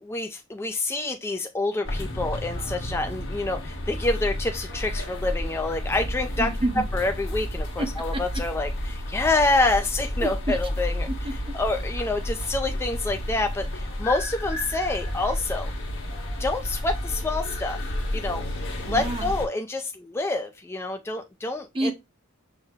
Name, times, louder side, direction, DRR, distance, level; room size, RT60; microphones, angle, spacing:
voice 1, 0.0-6.5 6.9-11.1 11.5-15.7 16.4-17.8 18.1-18.4 18.9-21.9, left 2 dB, 10° left, 0.3 m, -27 dB
sound 1, 1.8-19.5, left 1 dB, 60° left, 1.2 m, -31 dB
voice 2, 6.4-6.9 7.8-7.9 8.1-8.2 10.2-10.6 11.1-11.5 18.9-19.3 21.7-21.9, right 1 dB, 25° right, 0.7 m, -28 dB
5.5 x 2.1 x 3.4 m
head